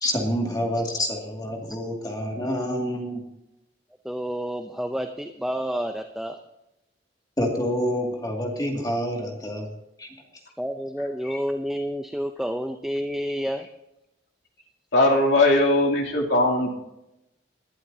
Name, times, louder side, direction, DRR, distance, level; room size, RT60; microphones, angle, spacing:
voice 1, 0.0-3.2 7.4-9.7 10.0-10.1, equal, 20° left, 0 dB, 2.3 m, -27 dB
voice 2, 4.0-6.4 10.6-13.7, equal, 5° right, 5 dB, 0.6 m, -29 dB
voice 3, 14.9-16.7, left 2 dB, 80° left, -2 dB, 2.9 m, -19 dB
20.0 x 11.5 x 2.8 m, 0.88 s
head